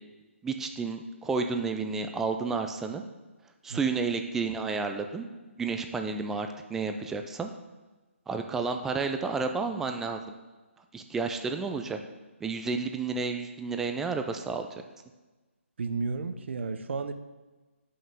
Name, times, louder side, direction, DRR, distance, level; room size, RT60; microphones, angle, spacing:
voice 1, 0.4-3.0 3.6-5.3 5.6-7.5 8.3-10.3 10.9-12.0 12.4-14.7, right 4 dB, 5° right, 5 dB, 0.3 m, -31 dB
voice 2, 15.8-17.1, right 4 dB, 60° right, 10 dB, 0.7 m, -32 dB
5.7 x 5.4 x 6.5 m, 1.2 s
hypercardioid pair, 155°, 7 cm